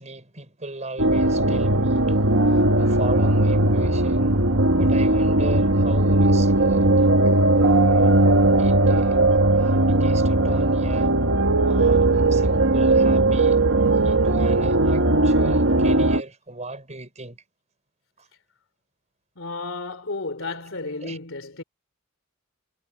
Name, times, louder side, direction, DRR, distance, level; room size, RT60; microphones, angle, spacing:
voice 1, 0.0-4.4 4.7-7.1 7.5-11.2 11.6-17.4 18.2-18.3 21.0-21.2, right 2 dB, 35° right, 5.6 m, -37 dB
sound 1, 1.0-16.2, right 2 dB, 75° right, 1.9 m, -18 dB
voice 2, 19.4-21.6, left 3 dB, 70° left, 3.5 m, -32 dB
head